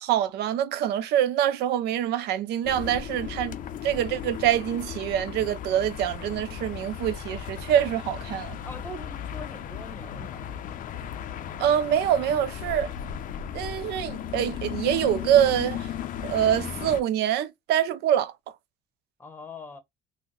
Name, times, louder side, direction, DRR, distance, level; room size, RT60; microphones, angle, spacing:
voice 1, 0.0-3.6 3.8-8.6 11.6-12.9 13.5-15.9 16.2-18.3, right 10 dB, 80° right, 0.4 m, -25 dB
sound 1, 2.6-17.0, left 9 dB, 50° left, 0.4 m, -36 dB
voice 2, 8.6-10.5 19.2-19.8, left 2 dB, 10° left, 0.9 m, -42 dB
2.5 x 2.1 x 3.8 m
cardioid pair, 110°, 17 cm